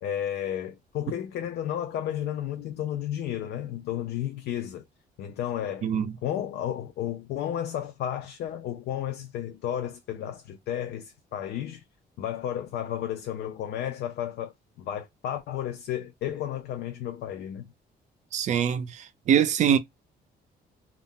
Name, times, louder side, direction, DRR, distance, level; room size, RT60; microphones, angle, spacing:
voice 1, 0.0-4.8 5.2-5.9 6.2-11.8 12.2-17.7, left 10 dB, 70° left, 0.4 m, -32 dB
voice 2, 18.3-19.8, right 8 dB, 45° right, 0.4 m, -23 dB
2.3 x 2.1 x 3.5 m
cardioid pair, 155°, 17 cm